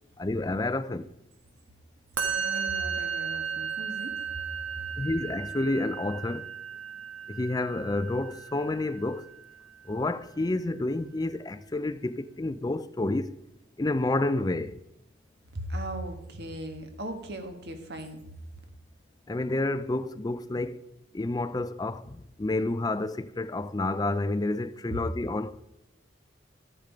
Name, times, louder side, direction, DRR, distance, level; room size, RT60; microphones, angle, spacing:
voice 1, 0.2-1.1 5.0-6.5 7.3-9.3 9.9-13.4 13.8-14.8 19.3-20.8 21.1-25.6, left 2 dB, 20° left, 0.4 m, -29 dB
voice 2, 2.2-4.1 4.8-4.9 15.5-18.2, right 1 dB, 55° right, 1.6 m, -38 dB
Musical instrument, 2.2-9.4, right 7 dB, 90° right, 1.6 m, -35 dB
14.5 x 6.5 x 5.1 m
head